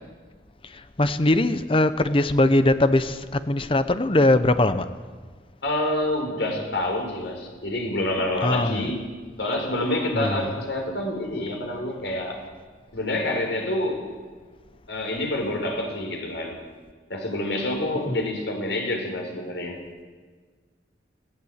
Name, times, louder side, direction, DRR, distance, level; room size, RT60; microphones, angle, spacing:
voice 1, 0.7-4.9 8.4-8.9 10.1-10.6 18.1-18.2, left 2 dB, 30° left, 11 dB, 0.8 m, -21 dB
voice 2, 5.6-9.1 9.4-12.4 12.9-14.1 14.9-16.6 17.1-19.8, left 1 dB, 85° left, 2 dB, 5.1 m, -27 dB
20.5 x 17.5 x 8.2 m, 1.5 s
head